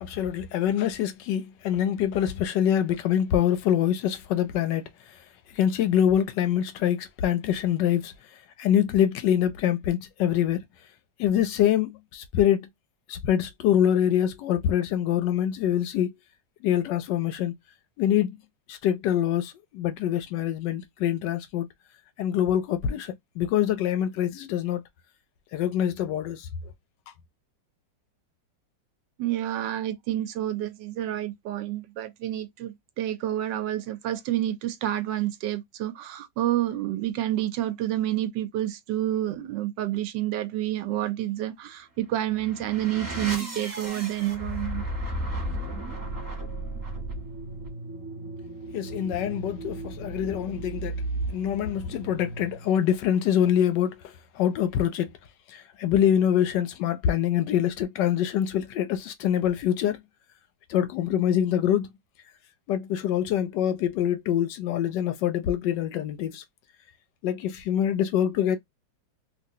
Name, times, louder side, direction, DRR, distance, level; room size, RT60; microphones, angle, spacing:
voice 1, 0.0-5.2 5.5-10.6 11.2-12.7 13.1-16.1 16.6-17.5 18.0-18.4 18.7-21.7 22.2-24.8 25.5-26.5 48.7-50.9 51.3-55.1 55.5-60.0 60.7-61.9 62.7-66.4 67.2-68.6, left 10 dB, 75° left, 1.1 m, -25 dB
voice 2, 29.2-44.8, right 13 dB, 75° right, 1.2 m, -29 dB
sound 1, 42.1-52.8, right 1 dB, 20° right, 1.1 m, -35 dB
3.0 x 2.6 x 2.6 m
omnidirectional pair, 2.1 m